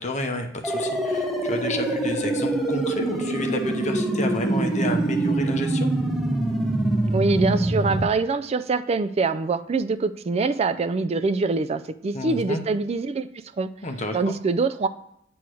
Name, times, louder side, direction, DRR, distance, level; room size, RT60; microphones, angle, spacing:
voice 1, 0.0-5.9 12.1-12.6 13.8-14.4, left 2 dB, 35° left, 4 dB, 0.8 m, -30 dB
High Score Fill - Descending Faster, 0.6-8.0, right 2 dB, ahead, 0.8 m, -24 dB
voice 2, 7.1-13.3 13.6-13.7 14.1-14.9, right 3 dB, 30° right, 12 dB, 0.3 m, -24 dB
8.2 x 3.1 x 6.2 m, 0.76 s
head